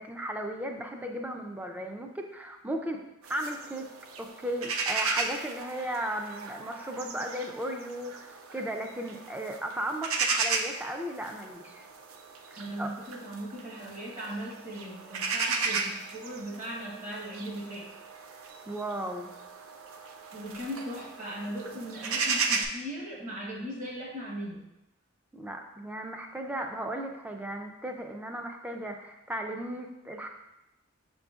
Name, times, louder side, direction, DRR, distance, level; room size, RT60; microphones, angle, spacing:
voice 1, 0.0-3.0 3.3-3.9 4.2-11.9 12.5-12.9 18.7-19.3 25.3-30.3, right 1 dB, 5° right, 3 dB, 0.3 m, -36 dB
sound 1, 3.2-22.7, right 4 dB, 85° right, 0.4 m, -35 dB
voice 2, 12.6-17.9 20.3-24.6, equal, 35° right, -4 dB, 1.1 m, -38 dB
5.5 x 3.8 x 2.4 m, 0.93 s
head